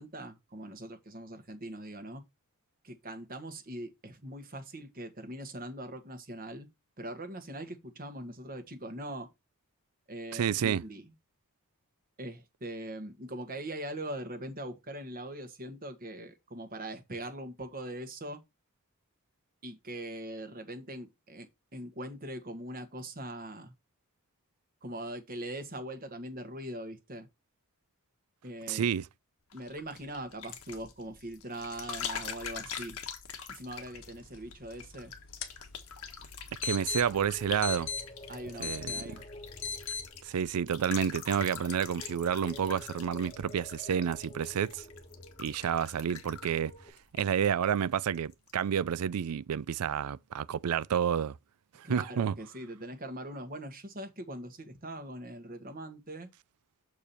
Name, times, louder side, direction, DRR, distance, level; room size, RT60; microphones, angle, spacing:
voice 1, 0.0-2.2 2.8-6.7 7.0-9.3 10.1-11.0 12.2-18.4 19.6-23.7 24.8-27.3 28.4-28.9 29.5-33.0 33.5-35.1 38.3-39.2 51.8-56.3, right 1 dB, 40° right, 1.4 m, -41 dB
voice 2, 10.3-10.8 28.7-29.1 36.6-37.9 38.6-39.0 40.2-44.8 45.4-46.7 47.2-51.4 51.8-52.4, right 8 dB, 90° right, 0.4 m, -30 dB
sound 1, 29.5-47.9 48.1-48.6, left 7 dB, 75° left, 1.4 m, -45 dB
sound 2, 33.8-40.1, left 5 dB, 60° left, 1.2 m, -40 dB
sound 3, 36.8-46.9, left 1 dB, 30° left, 1.1 m, -50 dB
6.9 x 4.7 x 4.3 m
head